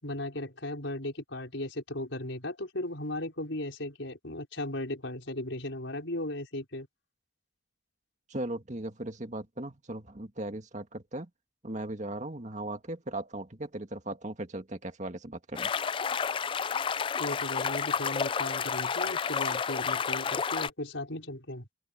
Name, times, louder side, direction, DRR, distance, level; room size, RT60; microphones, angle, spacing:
voice 1, 0.0-6.9 17.2-21.7, left 1 dB, 75° left, 5.0 m, -36 dB
voice 2, 8.3-11.3 11.6-15.7, right 1 dB, 40° right, 1.9 m, -38 dB
sound 1, 15.6-20.7, left 6 dB, 25° left, 0.3 m, -30 dB
head